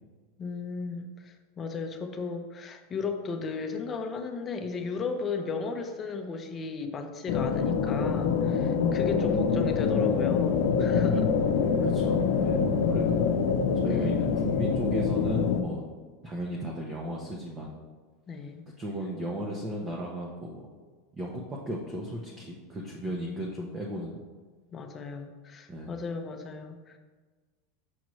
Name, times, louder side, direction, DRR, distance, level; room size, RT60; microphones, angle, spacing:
voice 1, 0.4-11.3 13.1-13.2 13.9-14.2 18.3-18.6 24.7-26.9, left 4 dB, 25° left, 5 dB, 0.6 m, -35 dB
sound 1, 7.3-15.6, left 6 dB, 75° left, 0.6 m, -25 dB
voice 2, 11.8-13.3 13.7-15.8 16.2-17.8 18.8-20.7 21.1-24.2 25.7-26.0, right 1 dB, 20° right, -2 dB, 0.7 m, -35 dB
6.3 x 6.0 x 3.1 m, 1.4 s
supercardioid pair, 145°, 0 cm